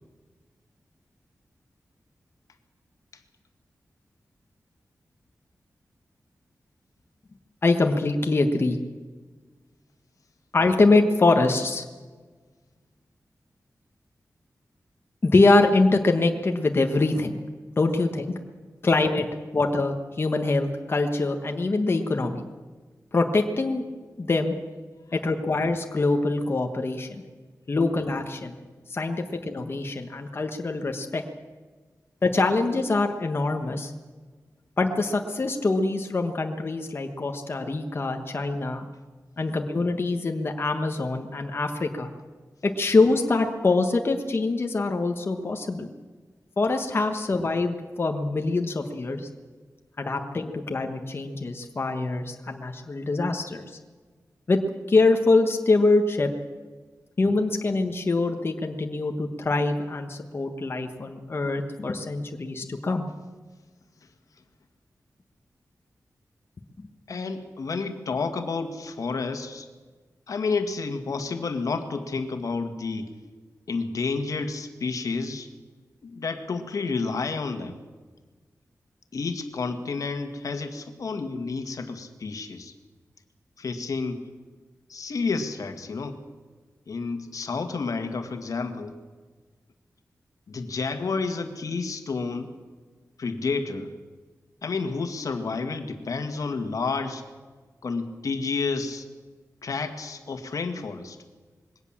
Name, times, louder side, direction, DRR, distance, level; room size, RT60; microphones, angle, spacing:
voice 1, 7.6-8.8 10.5-11.8 15.2-17.3 17.8-18.3 18.8-19.3 19.5-22.5 23.1-23.8 24.2-24.5 25.1-27.2 27.7-28.6 28.9-31.2 32.2-33.9 34.8-38.8 39.4-42.1 42.6-45.9 46.6-49.3 50.0-53.8 54.5-54.6 54.9-56.3 57.2-63.0, left 3 dB, 40° left, 4 dB, 1.4 m, -24 dB
voice 2, 67.1-69.7 70.3-73.1 73.7-75.5 76.0-77.8 79.1-82.7 83.6-84.2 84.9-86.2 86.9-89.0 90.5-92.5 93.2-93.9 94.6-97.2 97.8-99.1 99.6-101.2, left 4 dB, 75° left, 7 dB, 1.8 m, -30 dB
21.5 x 17.5 x 7.4 m, 1.4 s
wide cardioid pair, 120°, 6 cm